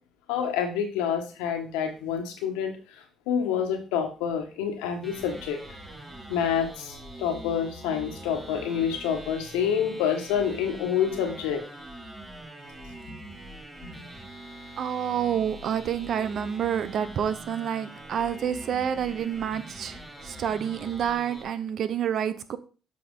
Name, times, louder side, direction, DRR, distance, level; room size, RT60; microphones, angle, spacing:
voice 1, 0.3-5.6 6.3-11.6 12.9-13.2 13.8-13.9, left 8 dB, 90° left, 5 dB, 1.5 m, -28 dB
sound 1, 5.0-21.4, right 1 dB, 10° right, 3.5 m, -44 dB
voice 2, 14.8-22.6, right 8 dB, 60° right, 13 dB, 0.8 m, -28 dB
7.6 x 5.4 x 3.9 m, 0.36 s
supercardioid pair, 70°, 0 cm